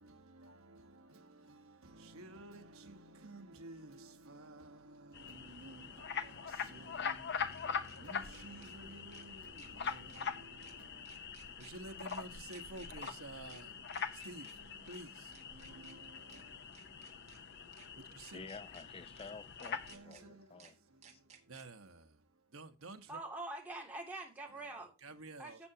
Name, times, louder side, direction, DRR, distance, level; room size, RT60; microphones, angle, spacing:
voice 1, 0.0-18.4 19.8-23.2 24.5-24.7 25.0-25.7, right 2 dB, 65° right, 1.3 m, -53 dB
sound 1, 3.7-3.8 6.1-8.0 8.3-8.7 9.1-9.3 9.6-10.2 10.6-10.7 11.0-11.7 12.1-12.2 12.5-13.1 13.4-13.6 13.9-14.5 14.9-15.0 15.3-15.9 16.3-16.4 16.7-17.4 17.7-17.9 18.2-18.8 19.2-19.3 19.6-20.2 20.6-20.7 21.0-21.6, right 6 dB, 30° right, 1.7 m, -60 dB
sound 2, 5.1-20.0, left 6 dB, 50° left, 0.8 m, -43 dB
voice 2, 18.3-20.7 21.1-21.2, left 4 dB, 25° left, 0.5 m, -51 dB
voice 3, 23.1-24.9 25.4-25.7, right 2 dB, 5° right, 2.7 m, -44 dB
12.0 x 7.9 x 2.9 m
head